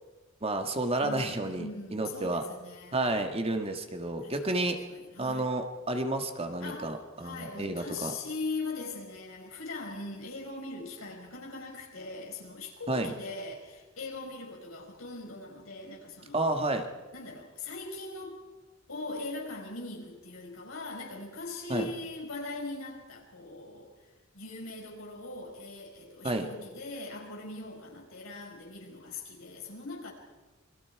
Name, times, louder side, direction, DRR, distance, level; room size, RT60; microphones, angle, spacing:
voice 1, 0.4-2.4 2.9-4.8 5.2-8.1 12.9-13.1 16.3-16.9 21.7-21.9 26.2-26.5, right 2 dB, 30° right, 5 dB, 1.8 m, -31 dB
voice 2, 1.0-3.0 4.2-5.5 6.6-6.9 7.2-16.4 17.1-18.4 18.9-23.9 24.3-30.1, left 3 dB, 85° left, 0 dB, 5.5 m, -40 dB
27.5 x 23.5 x 4.8 m, 1.2 s
head